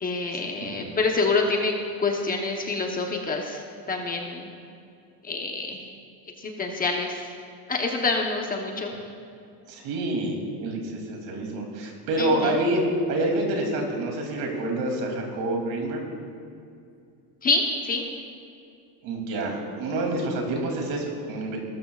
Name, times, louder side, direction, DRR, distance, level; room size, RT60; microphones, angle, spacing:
voice 1, 0.0-3.6 3.9-4.5 5.2-5.9 6.4-7.3 7.7-8.9 12.2-12.6 17.4-18.0, left 3 dB, 20° left, 1 dB, 1.0 m, -27 dB
voice 2, 9.7-12.8 13.1-16.0 19.0-21.6, right 2 dB, 60° right, 1 dB, 2.9 m, -27 dB
18.5 x 13.5 x 2.4 m, 2.5 s
cardioid pair, 160°, 39 cm